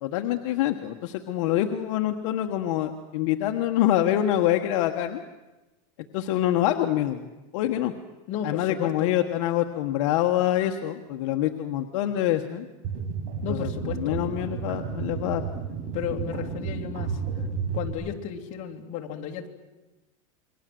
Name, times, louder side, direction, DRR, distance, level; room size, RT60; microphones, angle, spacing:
voice 1, 0.0-5.2 6.1-7.9 8.4-12.7 13.5-15.4 15.8-15.9, left 12 dB, 70° left, 5 dB, 1.4 m, -26 dB
voice 2, 8.3-9.1 13.4-14.2 15.9-17.2 17.7-19.5, left 9 dB, 45° left, 2 dB, 3.0 m, -33 dB
sound 1, 12.8-17.9, right 6 dB, 60° right, 5.7 m, -32 dB
28.0 x 23.0 x 7.8 m, 1.1 s
supercardioid pair, 150°, 17 cm